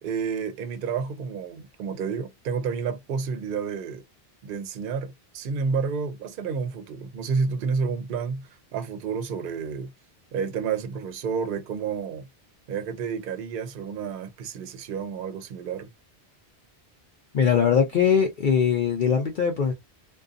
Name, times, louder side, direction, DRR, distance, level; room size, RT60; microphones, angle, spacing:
voice 1, 0.0-4.0 4.4-9.9 10.3-12.3 12.7-15.9, right 5 dB, 60° right, 0.7 m, -30 dB
voice 2, 17.3-19.7, left 7 dB, 55° left, 0.6 m, -21 dB
2.5 x 2.3 x 2.4 m
omnidirectional pair, 1.1 m